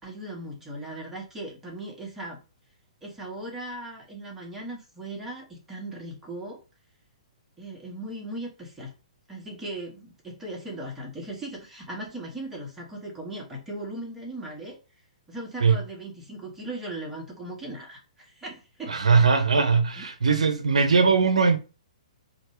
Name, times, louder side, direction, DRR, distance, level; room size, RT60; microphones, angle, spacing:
voice 1, 0.0-2.4 3.0-6.6 7.6-8.9 9.3-14.8 15.3-19.0 20.0-20.1 21.1-21.2, right 1 dB, 10° right, 1.4 m, -38 dB
voice 2, 18.9-21.6, right 5 dB, 70° right, 0.6 m, -20 dB
4.2 x 2.7 x 3.2 m
figure-of-eight pair, 120°, 4 cm